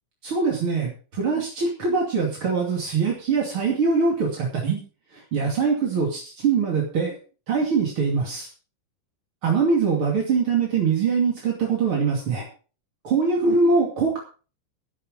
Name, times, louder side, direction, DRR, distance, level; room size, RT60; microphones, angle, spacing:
voice 1, 0.2-4.8 5.1-7.2 7.5-8.5 9.4-12.5 13.0-14.2, right 5 dB, 35° right, -1 dB, 2.4 m, -23 dB
17.0 x 8.1 x 5.2 m, 0.38 s
omnidirectional pair, 5.5 m